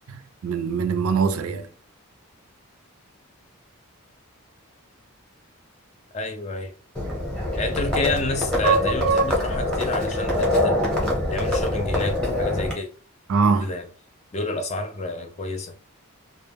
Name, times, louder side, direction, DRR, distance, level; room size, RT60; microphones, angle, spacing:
voice 1, 0.1-1.7 8.6-9.3 13.3-13.7, right 4 dB, 70° right, 0.4 m, -22 dB
voice 2, 6.1-6.7 7.5-12.9 13.6-13.9 14.3-15.7, left 2 dB, 30° left, 0.3 m, -29 dB
Livestock farm animals working animals, 6.9-12.7, left 1 dB, 5° left, 0.7 m, -24 dB
2.1 x 2.1 x 3.2 m
head